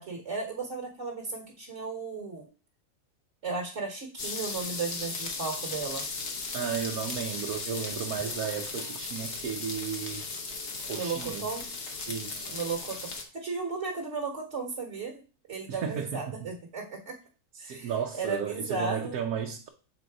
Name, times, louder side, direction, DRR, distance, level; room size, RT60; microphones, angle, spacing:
voice 1, 0.0-2.5 3.4-6.1 10.9-11.6 12.5-15.2 15.5-17.2 17.6-19.2, right 4 dB, 55° right, 1.6 m, -35 dB
sound 1, 4.2-13.2, left 4 dB, 65° left, 1.5 m, -36 dB
voice 2, 6.5-10.2 10.8-11.5 12.1-12.6 15.7-16.5 17.5-19.7, right 8 dB, 90° right, 1.2 m, -34 dB
7.6 x 3.9 x 4.7 m
omnidirectional pair, 1.5 m